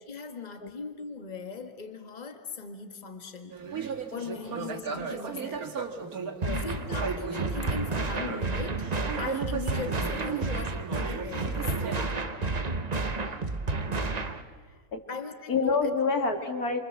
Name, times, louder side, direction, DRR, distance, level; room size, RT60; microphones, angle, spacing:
voice 1, 0.1-3.6 4.1-5.7 6.4-8.9 9.2-11.7 15.1-15.9, left 4 dB, 30° left, 6 dB, 1.7 m, -39 dB
sound 1, 3.5-6.5 6.9-8.6 8.8-12.2, right 6 dB, 80° right, 2.1 m, -36 dB
sound 2, 6.4-14.4, right 3 dB, 30° right, 1.1 m, -31 dB
voice 2, 12.9-13.4 14.9-15.0 15.5-16.8, left 4 dB, 85° left, 4 dB, 2.8 m, -28 dB
28.5 x 24.0 x 7.5 m, 1.5 s
omnidirectional pair, 1.5 m